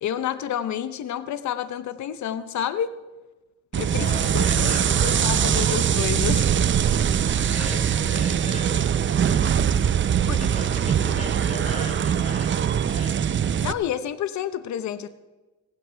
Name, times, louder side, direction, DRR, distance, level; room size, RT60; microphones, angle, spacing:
voice 1, 0.0-2.9 3.8-6.5 7.3-7.7 10.3-10.4 13.6-15.1, left 10 dB, 70° left, 12 dB, 0.9 m, -29 dB
sound 1, 3.7-13.7, right 8 dB, 40° right, 0.6 m, -22 dB
voice 2, 4.0-5.3 7.5-9.8 10.4-13.3, left 2 dB, 25° left, 2 dB, 3.7 m, -38 dB
17.5 x 16.5 x 3.4 m, 1.2 s
cardioid pair, 90°, 30 cm